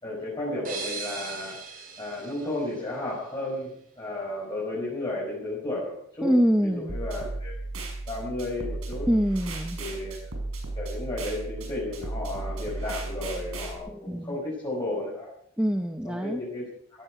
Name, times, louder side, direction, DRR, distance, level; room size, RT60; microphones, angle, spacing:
voice 1, 0.0-6.3 6.6-7.5 8.1-9.1 9.8-10.2 10.7-15.3 16.0-16.7, left 1 dB, 20° left, -6 dB, 5.4 m, -33 dB
sound 1, 0.6-3.4, right 4 dB, 45° right, 4.5 m, -39 dB
voice 2, 6.2-6.9 9.1-9.8 13.9-14.4 15.6-16.4, equal, 5° right, 5 dB, 0.8 m, -25 dB
sound 2, 6.9-13.7, right 2 dB, 85° right, 5.9 m, -35 dB
16.5 x 16.0 x 4.9 m, 0.67 s
head